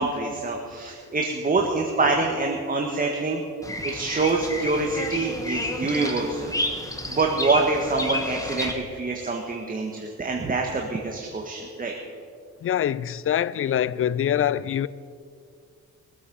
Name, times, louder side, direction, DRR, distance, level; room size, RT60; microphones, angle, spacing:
voice 1, 0.0-3.4 3.8-6.5 7.1-11.9, right 3 dB, 30° right, 1.7 m, -25 dB
Bird vocalization bird call bird song, 3.6-8.7, left 1 dB, 10° left, 1.8 m, -31 dB
voice 2, 12.6-14.9, left 10 dB, 45° left, 0.5 m, -24 dB
22.5 x 8.5 x 5.6 m
cardioid pair, 90°, 30 cm